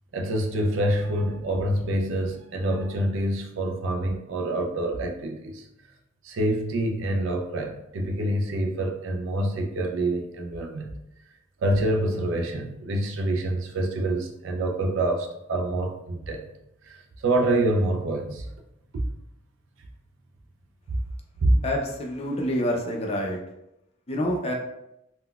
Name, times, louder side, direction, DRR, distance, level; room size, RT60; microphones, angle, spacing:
voice 1, 0.1-5.7 6.2-10.9 11.6-16.5 16.8-18.5 20.9-21.0 21.4-21.6, right 1 dB, 85° right, 3 dB, 0.4 m, -26 dB
voice 2, 21.6-23.4 24.1-24.5, equal, 30° left, 0 dB, 0.5 m, -27 dB
3.7 x 2.1 x 2.2 m, 0.85 s
head